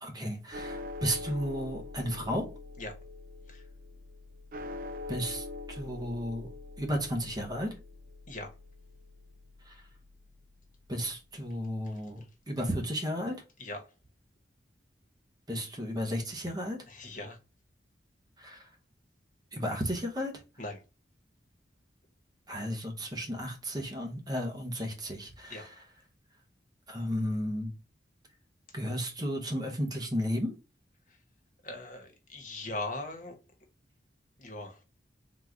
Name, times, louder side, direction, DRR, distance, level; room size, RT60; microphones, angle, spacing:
voice 1, 0.0-2.5 5.1-6.5 6.8-7.7 9.6-9.8 10.9-12.2 12.5-13.4 15.5-16.8 18.4-18.7 19.5-20.3 22.5-25.8 26.9-27.7 28.7-30.5, equal, 20° right, 0.8 m, -33 dB
sound 1, 0.5-10.9, left 2 dB, 45° right, 0.4 m, -44 dB
voice 2, 16.9-17.4 20.6-20.8 25.5-25.6 31.6-33.3 34.4-34.8, left 2 dB, 45° left, 1.1 m, -39 dB
3.9 x 2.4 x 4.5 m
head